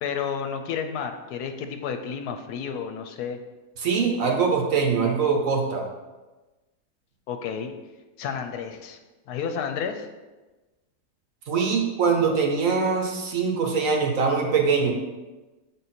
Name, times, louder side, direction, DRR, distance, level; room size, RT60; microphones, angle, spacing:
voice 1, 0.0-3.4 7.3-7.8 8.2-9.0 9.3-10.1, left 7 dB, 80° left, 6 dB, 1.1 m, -31 dB
voice 2, 3.8-5.9 11.5-14.9, right 5 dB, 60° right, 2 dB, 1.2 m, -23 dB
7.0 x 3.9 x 4.2 m, 1.2 s
omnidirectional pair, 1.7 m